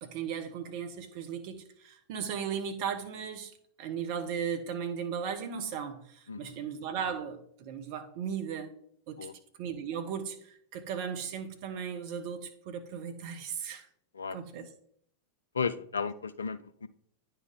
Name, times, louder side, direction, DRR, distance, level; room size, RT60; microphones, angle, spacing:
voice 1, 0.0-3.5 3.8-8.7 9.1-9.2 9.6-13.9 14.3-14.7, right 7 dB, 45° right, 6 dB, 1.0 m, -36 dB
voice 2, 6.3-6.6 9.2-9.3 14.1-14.4 15.5-16.9, left 5 dB, 70° left, 15 dB, 0.4 m, -34 dB
9.5 x 4.6 x 3.7 m, 0.65 s
figure-of-eight pair, 90°, 0 cm